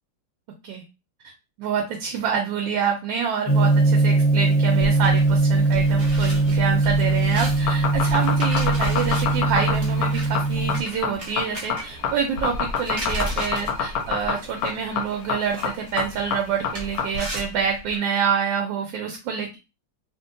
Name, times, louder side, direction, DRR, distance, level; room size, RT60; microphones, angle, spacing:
voice 1, 1.6-19.6, right 6 dB, 80° right, 3 dB, 1.3 m, -27 dB
Gong, 3.5-10.8, right 3 dB, 40° left, 0.5 m, -20 dB
sound 1, 4.8-18.0, right 1 dB, 55° right, 0.3 m, -36 dB
sound 2, 7.5-17.2, left 6 dB, 70° left, 0.9 m, -26 dB
3.0 x 2.6 x 2.5 m, 0.27 s
omnidirectional pair, 2.1 m